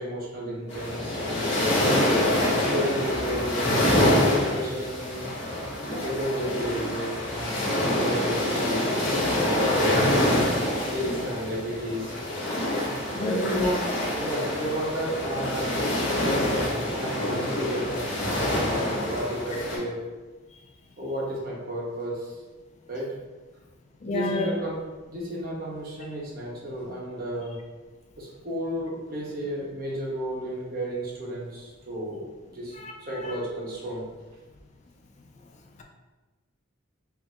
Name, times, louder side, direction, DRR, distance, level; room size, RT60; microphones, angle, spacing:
voice 1, 0.0-1.9 2.4-5.3 6.0-8.9 9.3-10.3 10.9-12.2 13.1-15.8 16.2-20.1 21.0-22.4 22.9-23.1 24.0-24.8 25.1-27.6 28.2-34.1, equal, 50° right, -4 dB, 1.0 m, -32 dB
sound 1, 0.7-19.8, left 1 dB, 65° left, 1.4 m, -26 dB
voice 2, 13.1-13.5 24.0-24.5 32.8-32.9 33.2-33.3, left 2 dB, 35° left, 2 dB, 0.4 m, -30 dB
4.6 x 2.1 x 3.5 m, 1.2 s
head